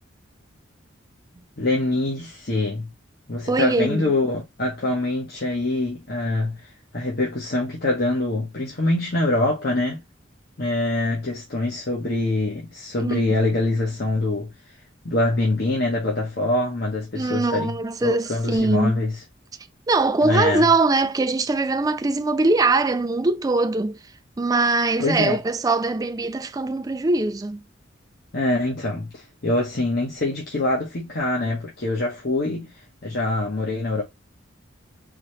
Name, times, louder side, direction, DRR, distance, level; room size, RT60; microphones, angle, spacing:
voice 1, 1.6-2.9 3.3-10.0 10.6-14.5 15.0-17.8 18.0-19.2 20.2-20.7 25.0-25.4 28.3-32.7 33.0-34.0, left 2 dB, 55° left, 1.1 m, -24 dB
voice 2, 3.5-4.0 13.0-13.2 17.1-19.0 19.9-24.0 24.4-27.6, right 3 dB, 20° right, 0.3 m, -22 dB
4.0 x 2.9 x 3.2 m
head